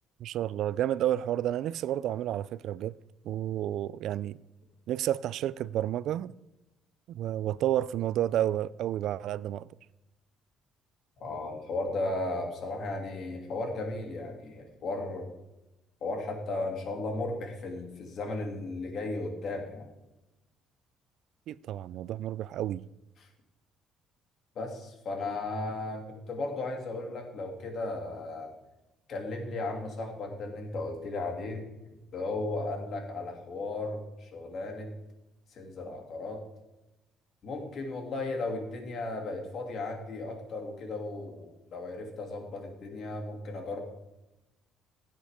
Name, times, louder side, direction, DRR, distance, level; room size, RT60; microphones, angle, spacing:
voice 1, 0.2-3.0 3.2-4.4 4.9-6.3 7.1-9.7 21.5-22.9, right 12 dB, 70° right, 0.3 m, -30 dB
voice 2, 11.2-15.3 16.0-19.9 24.5-28.5 29.1-31.6 32.1-34.9 35.5-36.4 37.4-43.8, left 2 dB, 50° left, 2.7 m, -35 dB
16.5 x 8.8 x 3.6 m
cardioid pair, 130°, 0 cm